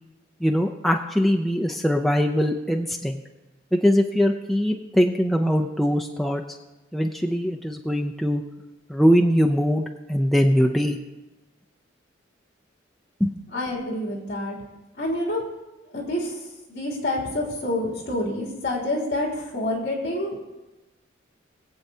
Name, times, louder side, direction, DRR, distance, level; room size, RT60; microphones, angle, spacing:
voice 1, 0.4-3.2 3.7-6.4 6.9-8.4 8.9-9.8 10.1-11.0 13.2-13.3, equal, ahead, 1 dB, 0.4 m, -21 dB
voice 2, 13.5-14.5 15.0-15.4 15.9-16.4 16.7-20.4, left 1 dB, 55° left, -2 dB, 2.9 m, -27 dB
21.0 x 8.2 x 2.8 m, 1.1 s
head